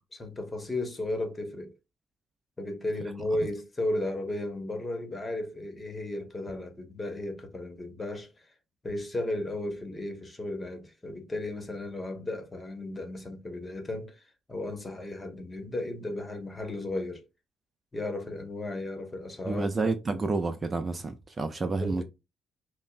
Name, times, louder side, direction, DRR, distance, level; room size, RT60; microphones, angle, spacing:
voice 1, 0.2-1.7 2.6-8.3 8.8-14.2 14.5-17.2 17.9-19.7 20.1-20.2 21.8-22.0, left 1 dB, 25° left, 1.2 m, -34 dB
voice 2, 19.4-22.0, right 3 dB, 30° right, 0.5 m, -29 dB
5.3 x 2.1 x 2.5 m
cardioid pair, 90°, 0 cm